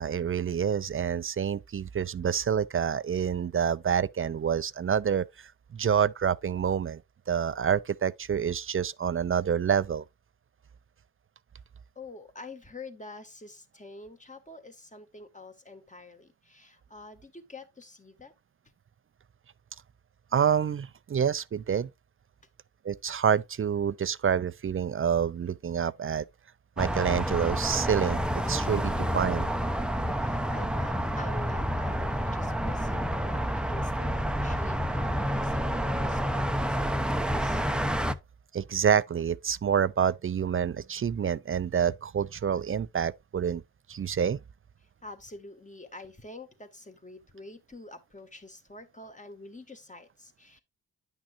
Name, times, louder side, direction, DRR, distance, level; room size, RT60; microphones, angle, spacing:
voice 1, 0.0-7.0 7.3-10.0 20.3-21.9 22.8-26.3 26.8-29.5 38.5-43.6 43.9-44.4, right 7 dB, 35° right, 0.4 m, -27 dB
voice 2, 12.0-18.3 28.9-29.0 30.2-37.6 44.8-50.6, left 2 dB, 20° left, 1.8 m, -47 dB
sound 1, 26.8-38.1, equal, ahead, 0.7 m, -29 dB
10.0 x 6.0 x 2.6 m
supercardioid pair, 45°, 38 cm